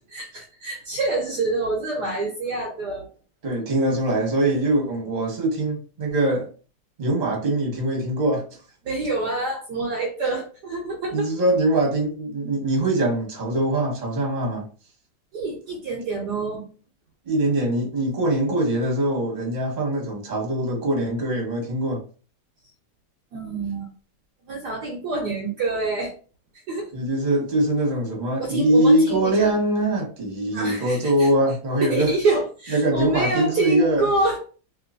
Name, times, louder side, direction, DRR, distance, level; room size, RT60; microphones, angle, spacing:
voice 1, 0.1-3.1 8.8-11.3 15.3-16.6 23.3-23.9 24.5-26.1 26.7-26.9 28.4-29.5 30.5-31.3 31.8-34.4, right 3 dB, 65° right, 1.2 m, -26 dB
voice 2, 3.4-6.5 7.0-8.4 11.1-14.7 17.2-22.0 26.9-32.2 32.7-34.1, right 1 dB, 30° right, 1.1 m, -22 dB
3.0 x 3.0 x 2.5 m
omnidirectional pair, 2.1 m